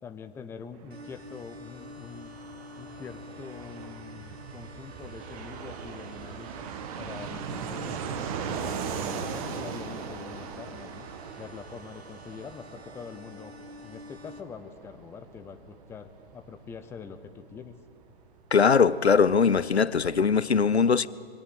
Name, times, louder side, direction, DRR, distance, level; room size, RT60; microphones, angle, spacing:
voice 1, 0.0-2.3 2.8-6.5 7.0-11.1 11.4-13.5 13.8-17.8, left 6 dB, 10° left, 0.7 m, -44 dB
Fixed-wing aircraft airplane, 0.7-19.1 19.4-19.5 19.7-20.4, right 7 dB, 35° right, 1.7 m, -39 dB
sound 1, 0.9-14.4, left 2 dB, 75° right, 1.9 m, -48 dB
voice 2, 18.5-21.1, left 5 dB, 85° left, 0.6 m, -21 dB
23.0 x 17.0 x 7.6 m
figure-of-eight pair, 120°, 32 cm